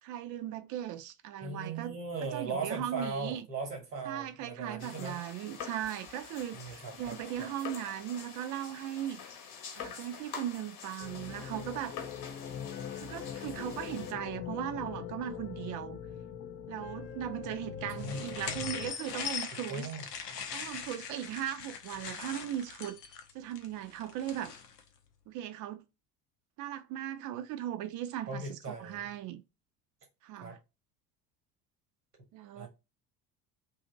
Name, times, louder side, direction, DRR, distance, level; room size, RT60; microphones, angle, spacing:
voice 1, 0.0-3.5 4.1-9.2 9.7-11.9 12.9-16.0 16.7-19.9 20.5-23.0 23.3-24.5 25.3-25.8 26.6-29.4 30.2-30.6 32.3-32.7, right 11 dB, 40° right, 0.5 m, -38 dB
voice 2, 1.4-5.1 6.5-7.5 17.9-18.6 19.7-20.0 28.3-29.0 30.4-30.6 32.5-32.7, right 3 dB, 85° right, 1.3 m, -39 dB
sound 1, 4.8-14.1, left 7 dB, 50° left, 0.9 m, -46 dB
sound 2, 11.0-18.9, left 8 dB, 30° left, 0.4 m, -42 dB
sound 3, 18.0-24.8, left 7 dB, 80° left, 0.7 m, -41 dB
2.8 x 2.6 x 3.7 m
figure-of-eight pair, 60°, 49 cm